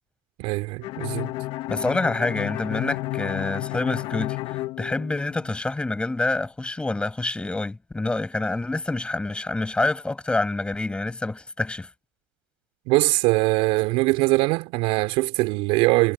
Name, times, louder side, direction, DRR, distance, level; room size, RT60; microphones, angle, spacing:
voice 1, 0.4-1.3 12.9-16.1, right 23 dB, 65° right, 4.5 m, -22 dB
Bowed string instrument, 0.8-5.6, left 18 dB, 60° left, 1.9 m, -31 dB
voice 2, 1.7-11.9, left 2 dB, 10° left, 7.1 m, -27 dB
supercardioid pair, 115°, 10 cm